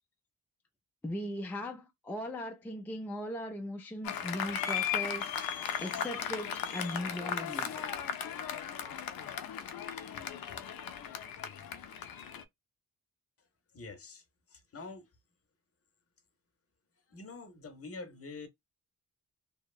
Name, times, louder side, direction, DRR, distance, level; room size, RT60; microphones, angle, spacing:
voice 1, 1.0-5.3 5.8-7.9, left 1 dB, 5° left, 0.4 m, -39 dB
Applause, 4.0-12.4, left 8 dB, 80° left, 0.5 m, -37 dB
voice 2, 13.7-14.2 14.5-15.1 17.1-18.5, left 3 dB, 40° left, 0.7 m, -45 dB
2.8 x 2.1 x 2.3 m
wide cardioid pair, 140°, 35 cm